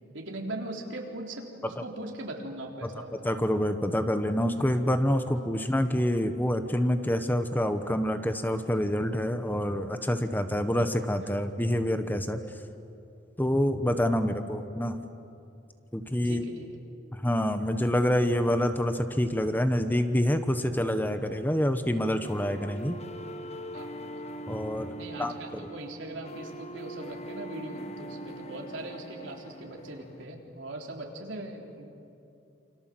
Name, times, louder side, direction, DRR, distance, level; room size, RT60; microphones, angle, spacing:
voice 1, 0.1-3.3 16.2-16.5 23.7-23.9 25.0-31.9, right 1 dB, 85° right, 1 dB, 3.8 m, -40 dB
voice 2, 3.2-12.4 13.4-15.0 15.9-16.4 17.1-23.0 24.5-24.9 25.2-25.6, equal, 10° left, 8 dB, 1.1 m, -27 dB
sound 1, 22.2-30.2, right 1 dB, 35° left, 1.5 m, -42 dB
28.5 x 26.5 x 7.8 m, 2.6 s
head